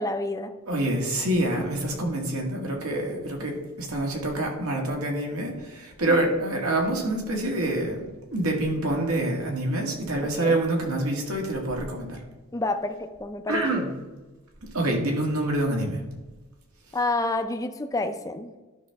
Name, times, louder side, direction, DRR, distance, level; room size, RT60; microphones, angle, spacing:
voice 1, 0.0-0.5 6.1-6.2 10.3-10.6 12.5-13.8 16.9-18.5, left 2 dB, 15° left, 6 dB, 0.4 m, -29 dB
voice 2, 0.7-12.2 13.5-13.9 14.7-16.0, right 1 dB, 80° right, 1 dB, 1.7 m, -26 dB
11.5 x 5.7 x 3.5 m, 1.2 s
head